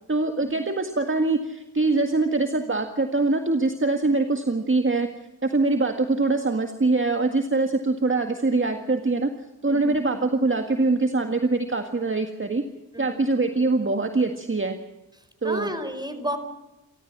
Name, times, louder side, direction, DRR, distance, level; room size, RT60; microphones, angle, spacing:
voice 1, 0.1-5.1 5.4-9.3 9.6-12.6 13.0-14.7 15.4-15.7, right 3 dB, 30° right, 6 dB, 1.9 m, -23 dB
voice 2, 15.2-16.4, equal, 10° right, 8 dB, 4.5 m, -32 dB
29.0 x 14.0 x 7.5 m, 0.98 s
wide cardioid pair, 70°, 38 cm